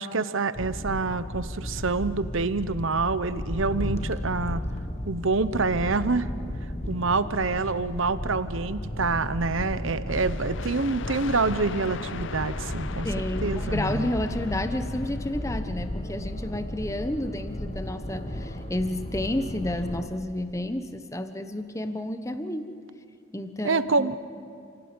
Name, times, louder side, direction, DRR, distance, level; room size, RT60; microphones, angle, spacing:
voice 1, 0.0-4.6 5.1-6.3 6.9-13.1 13.4-14.1 23.6-24.2, right 3 dB, 65° right, 13 dB, 1.0 m, -27 dB
sound 1, 0.5-20.1, left 1 dB, 30° left, 1.3 m, -34 dB
sound 2, 10.0-15.6, left 5 dB, 60° left, 0.6 m, -39 dB
voice 2, 13.0-22.7 23.3-24.1, left 1 dB, 15° left, 9 dB, 1.1 m, -31 dB
sound 3, 15.2-19.0 19.8-20.0, left 1 dB, 80° left, 2.2 m, -49 dB
29.0 x 17.5 x 9.7 m, 2.5 s
head